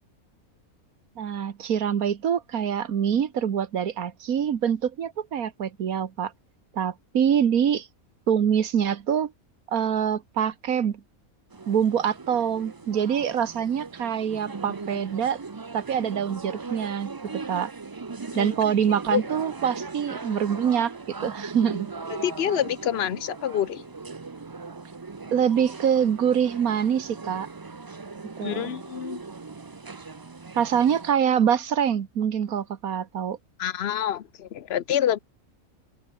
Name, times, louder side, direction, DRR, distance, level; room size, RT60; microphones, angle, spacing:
voice 1, 1.2-6.3 6.7-7.9 8.3-9.3 9.7-11.0 11.7-15.4 15.7-17.7 18.3-21.9 25.3-27.5 28.4-28.7 30.5-33.4, right 8 dB, 85° right, 1.7 m, -25 dB
sound 1, 11.5-31.1, right 4 dB, 30° right, 0.4 m, -39 dB
voice 2, 22.1-23.8 28.4-29.2 33.6-35.2, left 10 dB, 55° left, 0.9 m, -27 dB
omnidirectional pair, 1.5 m